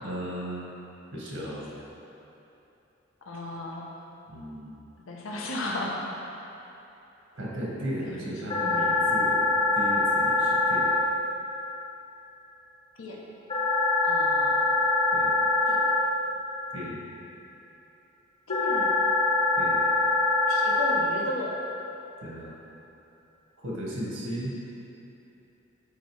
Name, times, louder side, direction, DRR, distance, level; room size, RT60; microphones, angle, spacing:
voice 1, 0.0-0.8 1.1-1.8 4.3-4.8 7.3-9.4 9.7-10.9 15.1-15.4 16.7-17.0 19.6-19.8 22.2-22.5 23.6-24.6, equal, 85° right, -5 dB, 1.3 m, -35 dB
voice 2, 3.3-3.9 5.1-6.0 8.0-8.3 8.6-9.0 13.0-13.2 14.0-14.6 15.7-15.8 18.5-19.0 20.4-21.6, left 2 dB, 80° left, -2 dB, 0.7 m, -35 dB
sound 1, 8.5-11.0 13.5-16.0 18.5-21.0, left 2 dB, 25° left, 0.9 m, -24 dB
8.3 x 4.1 x 3.1 m, 3.0 s
head